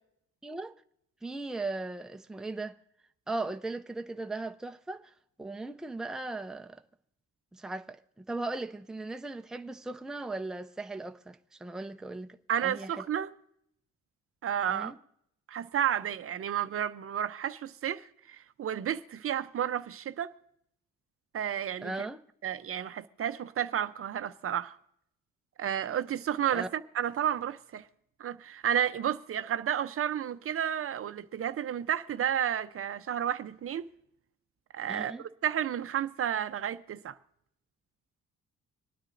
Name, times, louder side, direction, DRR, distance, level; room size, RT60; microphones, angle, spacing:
voice 1, 0.4-0.7 1.2-2.8 3.3-5.1 5.4-6.8 7.5-12.4 12.6-13.0 14.7-14.9 21.8-22.2 26.5-26.7 34.9-35.2, right 2 dB, ahead, 0.5 m, -38 dB
voice 2, 12.5-13.3 14.4-14.9 15.5-20.3 21.3-22.1 22.4-24.8 25.6-27.9 28.2-33.9 34.7-35.1 35.4-37.1, right 9 dB, 50° right, 0.6 m, -31 dB
26.0 x 9.5 x 2.5 m
cardioid pair, 90°, 30 cm